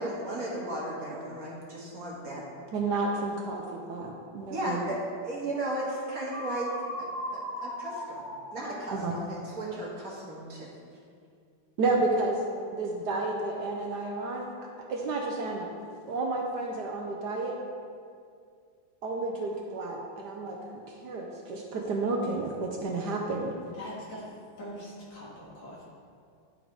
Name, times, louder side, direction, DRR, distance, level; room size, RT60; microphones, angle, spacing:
voice 1, 0.0-2.4 4.5-7.1 7.3-8.2 8.5-10.7, right 1 dB, 50° right, -5 dB, 1.7 m, -35 dB
voice 2, 2.7-4.8 8.9-9.1 11.8-12.4 12.7-14.5 14.9-15.7 16.1-17.6 19.0-20.6 20.9-23.5, right 3 dB, 65° right, 0 dB, 1.1 m, -31 dB
sound 1, 6.3-10.2, equal, 15° left, 1.1 m, -38 dB
voice 3, 23.7-24.3 24.6-25.8, equal, 70° left, -6 dB, 2.6 m, -42 dB
11.0 x 3.8 x 4.6 m, 2.3 s
omnidirectional pair, 2.2 m